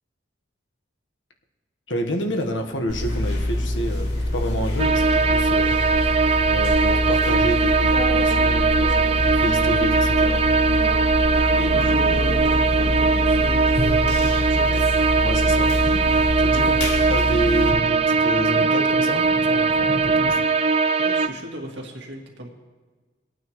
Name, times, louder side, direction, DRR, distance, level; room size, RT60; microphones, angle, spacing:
voice 1, 1.9-5.8 6.5-10.5 15.2-15.7 16.4-16.7 17.1-20.4, equal, 90° left, 4 dB, 1.4 m, -29 dB
sound 1, 2.9-17.7, left 1 dB, 65° left, 2.6 m, -25 dB
sound 2, 4.8-21.3, right 4 dB, 35° right, 0.5 m, -20 dB
sound 3, 11.1-20.4, equal, 30° left, 1.0 m, -40 dB
voice 2, 11.3-14.8 16.5-16.9 21.0-22.5, equal, 70° right, 0 dB, 2.1 m, -35 dB
21.5 x 9.0 x 3.1 m, 1.3 s
head